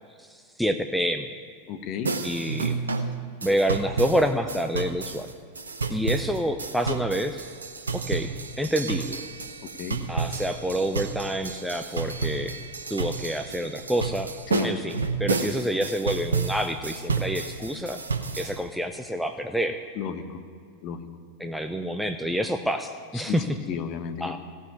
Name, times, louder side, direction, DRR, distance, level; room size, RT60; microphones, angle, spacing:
voice 1, 0.2-1.3 2.2-2.8 3.4-5.3 5.9-7.4 7.9-8.3 8.6-9.2 10.1-12.5 12.9-14.3 14.6-18.0 18.3-19.8 21.4-23.5 24.2-24.4, equal, ahead, 6 dB, 0.6 m, -28 dB
voice 2, 1.7-2.1 9.6-10.0 14.5-14.7 20.0-20.4 20.8-21.1 23.3-23.4 23.7-24.4, left 8 dB, 40° left, 8 dB, 1.1 m, -33 dB
sound 1, 2.0-18.6, right 4 dB, 75° right, 0.9 m, -31 dB
16.5 x 5.6 x 9.4 m, 2.2 s
figure-of-eight pair, 90°, 0 cm